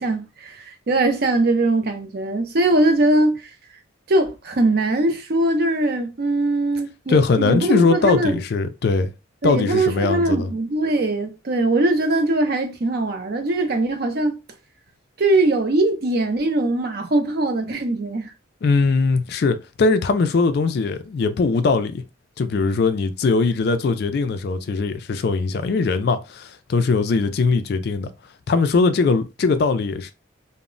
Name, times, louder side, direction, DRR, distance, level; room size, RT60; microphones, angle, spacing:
voice 1, 0.0-3.5 4.1-8.4 9.4-14.3 15.2-18.3, right 2 dB, 50° right, 0.5 m, -21 dB
voice 2, 7.1-9.1 9.4-10.5 18.6-22.0 22.4-28.1 28.5-30.1, left 4 dB, 50° left, 0.3 m, -20 dB
2.0 x 2.0 x 3.7 m
head